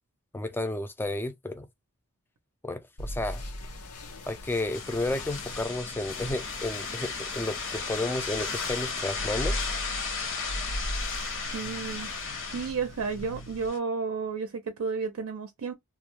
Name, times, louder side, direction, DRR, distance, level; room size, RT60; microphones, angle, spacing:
voice 1, 0.3-1.7 2.6-3.4 4.3-9.7, left 2 dB, 10° left, 0.4 m, -32 dB
sound 1, 3.0-13.7, left 1 dB, 85° left, 0.7 m, -39 dB
sound 2, 4.7-13.8, left 5 dB, 60° left, 0.9 m, -35 dB
voice 2, 11.5-12.1 12.5-15.7, right 5 dB, 65° right, 0.5 m, -32 dB
2.4 x 2.1 x 2.9 m
head